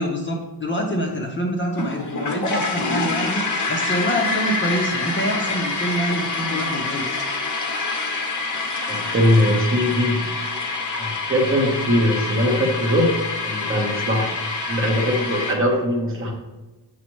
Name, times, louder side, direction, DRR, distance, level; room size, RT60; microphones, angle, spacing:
voice 1, 0.0-7.2, equal, 25° left, 1 dB, 0.6 m, -26 dB
sound 1, 1.7-15.5, left 3 dB, 45° left, 0.9 m, -26 dB
voice 2, 8.9-10.3 10.9-14.4 14.7-16.3, equal, 30° right, 0 dB, 1.0 m, -21 dB
7.4 x 5.1 x 3.0 m, 1.2 s
wide cardioid pair, 175°, 43 cm